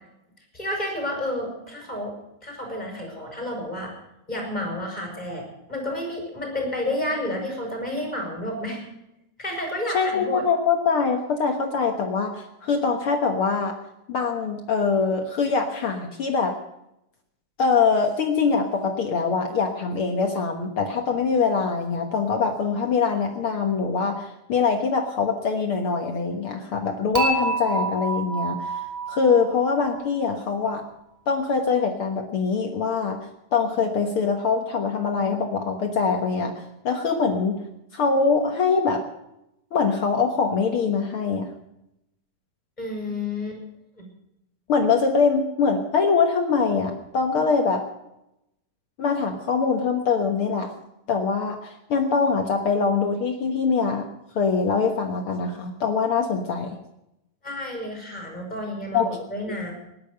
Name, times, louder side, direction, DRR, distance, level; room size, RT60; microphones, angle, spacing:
voice 1, 0.5-2.1 2.4-3.9 4.3-8.8 9.4-10.4 42.8-43.6 44.0-44.1 57.4-59.7, left 1 dB, 10° left, 1 dB, 5.4 m, -30 dB
voice 2, 9.9-13.7 14.1-16.6 17.6-28.8 29.1-30.8 31.3-33.2 33.5-37.6 37.9-39.0 39.7-41.5 44.7-47.8 49.0-50.7 51.1-54.0 54.3-56.8 58.9-59.1, left 5 dB, 70° left, 4 dB, 1.3 m, -23 dB
Dishes pots and pans / Chink clink, 27.1-30.3, right 3 dB, 5° right, 1.5 m, -28 dB
19.0 x 11.0 x 6.7 m, 0.85 s
omnidirectional pair, 4.4 m